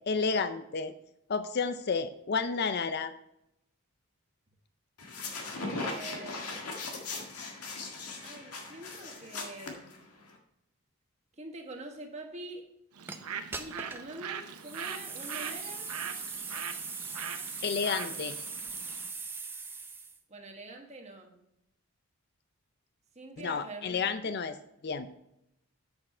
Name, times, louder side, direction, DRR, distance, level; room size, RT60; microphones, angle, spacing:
voice 1, 0.1-0.9 1.3-3.1 17.6-18.4 23.4-24.5 24.8-25.1, left 5 dB, 45° left, 11 dB, 0.5 m, -31 dB
sound 1, 5.0-10.3, left 3 dB, 90° left, 1.7 m, -39 dB
voice 2, 5.6-6.5 8.2-10.0 11.4-12.7 13.5-15.9 20.3-21.4 23.1-24.0 24.2-24.3, right 2 dB, 30° right, 2 dB, 1.3 m, -45 dB
Bird, 12.9-19.1, right 7 dB, 85° right, 0.7 m, -42 dB
sound 2, 13.1-13.2 13.5-14.1 14.6-20.2, right 4 dB, 10° right, 0.5 m, -40 dB
8.5 x 6.6 x 4.2 m, 0.82 s
head